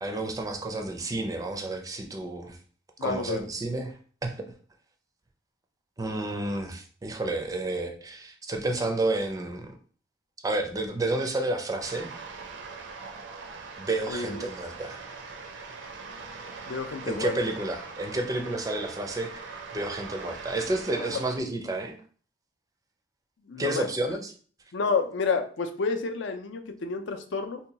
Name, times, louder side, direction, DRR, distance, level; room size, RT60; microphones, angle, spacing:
voice 1, 0.0-2.6 3.0-3.9 4.2-4.3 6.0-9.7 10.4-12.1 13.8-15.2 17.1-22.0 23.6-24.3, right 2 dB, 20° right, 4 dB, 0.4 m, -30 dB
voice 2, 3.0-3.4 14.1-14.4 16.7-17.3 21.0-21.2 23.5-23.9 24.7-27.6, left 4 dB, 75° left, 6 dB, 0.5 m, -30 dB
sound 1, 11.8-21.4, right 4 dB, 75° right, 0.5 m, -42 dB
2.7 x 2.2 x 3.9 m, 0.43 s
head